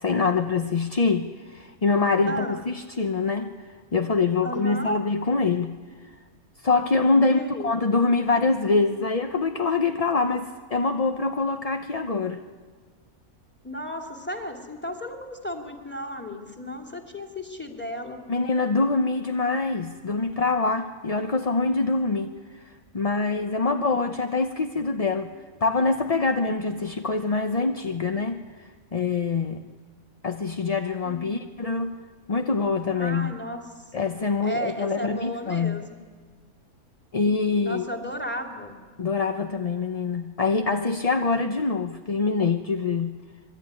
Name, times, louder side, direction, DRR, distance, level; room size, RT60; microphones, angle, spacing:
voice 1, 0.0-3.5 3.9-5.8 6.6-12.4 18.3-25.3 25.6-29.6 30.2-32.0 32.3-33.3 33.9-35.8 37.1-37.9 39.0-43.2, left 4 dB, 35° left, 6 dB, 0.6 m, -25 dB
voice 2, 2.2-2.7 4.4-5.0 7.3-7.7 13.6-18.2 23.7-24.1 31.0-31.3 32.9-33.8 34.4-35.9 37.6-38.8, equal, 5° left, 3 dB, 2.9 m, -34 dB
26.0 x 22.0 x 9.8 m, 1.5 s
omnidirectional pair, 1.7 m